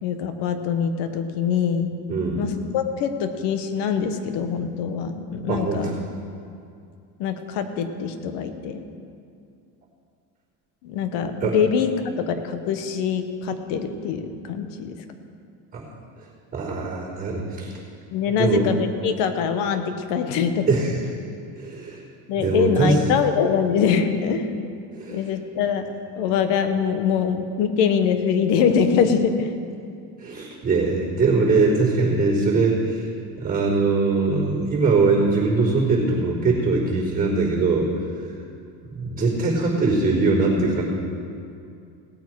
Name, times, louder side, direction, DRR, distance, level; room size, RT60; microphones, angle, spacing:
voice 1, 0.0-1.9 2.4-5.9 7.2-8.8 10.8-11.9 12.3-15.0 18.1-20.8 22.3-24.5 25.1-25.9 26.2-29.5, left 7 dB, 75° left, 8 dB, 1.2 m, -23 dB
voice 2, 2.1-2.4 5.5-6.0 11.4-11.6 15.7-15.8 16.2-17.7 18.4-18.6 20.7-21.0 21.6-22.1 22.4-23.0 24.9-25.2 30.2-33.1 33.4-37.9 38.9-40.8, right 3 dB, 20° right, -8 dB, 3.9 m, -22 dB
18.0 x 8.5 x 4.7 m, 2.4 s
cardioid pair, 140°, 42 cm